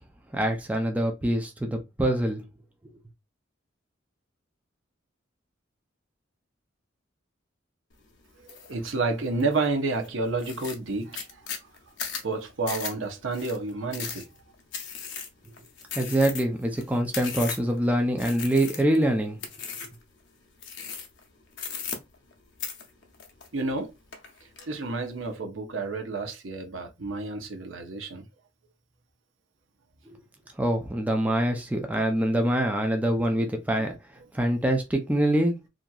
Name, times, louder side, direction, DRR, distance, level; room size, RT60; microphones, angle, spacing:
voice 1, 0.3-2.4 15.9-19.4 30.1-30.2 30.6-33.9 34.3-35.6, right 1 dB, 10° right, 0.4 m, -25 dB
sound 1, 8.5-8.7 9.2-9.7 10.0-10.1 10.4-17.8 18.2-19.0 19.4-20.0 20.6-21.2 21.5-22.3 22.6-23.8 24.1-24.7, left 6 dB, 65° left, 0.6 m, -37 dB
voice 2, 8.7-11.4 12.2-14.3 23.5-23.9 24.7-28.2, right 3 dB, 80° right, 0.7 m, -30 dB
2.9 x 2.5 x 2.3 m
head